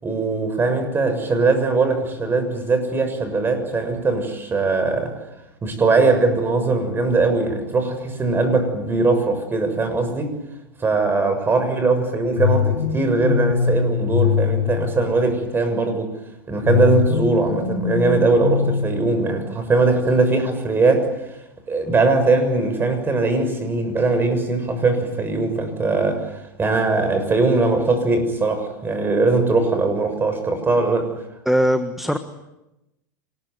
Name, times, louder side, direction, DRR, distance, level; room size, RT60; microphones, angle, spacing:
voice 1, 0.0-5.2 5.6-10.3 10.8-16.1 16.5-21.4 21.7-31.1, right 3 dB, 20° right, 8 dB, 6.8 m, -20 dB
sound 1, 12.4-15.5 16.6-19.6, left 7 dB, 90° left, 7.3 m, -23 dB
voice 2, 31.4-32.2, equal, ahead, 7 dB, 1.5 m, -19 dB
26.5 x 20.5 x 9.6 m, 0.93 s
hypercardioid pair, 115°, 11 cm